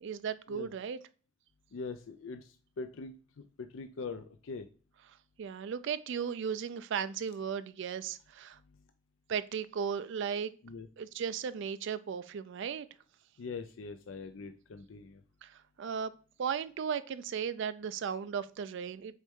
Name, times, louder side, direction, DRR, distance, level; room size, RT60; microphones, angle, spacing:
voice 1, 0.0-1.0 5.4-8.6 9.3-10.5 11.0-12.9 15.4-16.1 16.4-19.1, right 7 dB, 65° right, 0.4 m, -36 dB
voice 2, 1.7-2.4 2.8-3.1 3.6-4.7 10.6-10.9 13.4-15.2, left 4 dB, 70° left, 0.5 m, -42 dB
6.3 x 4.3 x 3.6 m
head